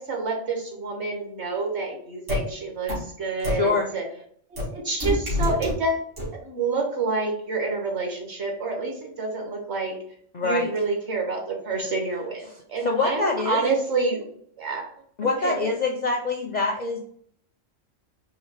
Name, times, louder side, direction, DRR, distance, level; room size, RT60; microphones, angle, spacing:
voice 1, 0.0-2.9 3.2-4.0 4.5-6.0 6.3-10.0 10.4-14.2 14.6-14.8 15.2-15.7, right 3 dB, 60° right, 1 dB, 1.4 m, -28 dB
sound 1, 2.3-2.4 2.9-3.0 3.4-3.5 4.6-4.7 5.0-5.7 6.2-6.3, left 1 dB, 75° right, 2.1 m, -25 dB
voice 2, 3.4-3.9 10.3-10.7 12.8-13.7 15.2-17.0, left 3 dB, 50° left, 1 dB, 0.5 m, -25 dB
4.7 x 2.9 x 3.3 m, 0.62 s
omnidirectional pair, 1.3 m